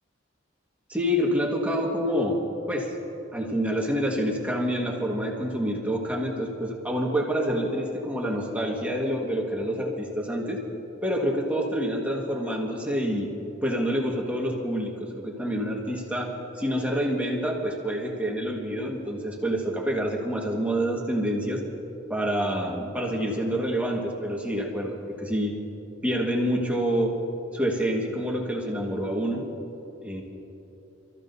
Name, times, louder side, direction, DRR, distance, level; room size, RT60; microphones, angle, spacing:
voice 1, 0.9-2.4 2.7-2.9 3.3-10.6 11.0-13.3 13.6-21.6 22.1-25.5 26.0-27.2 27.5-29.4 30.0-30.2, equal, 5° right, -1 dB, 1.6 m, -27 dB
28.0 x 14.5 x 2.7 m, 2.9 s
head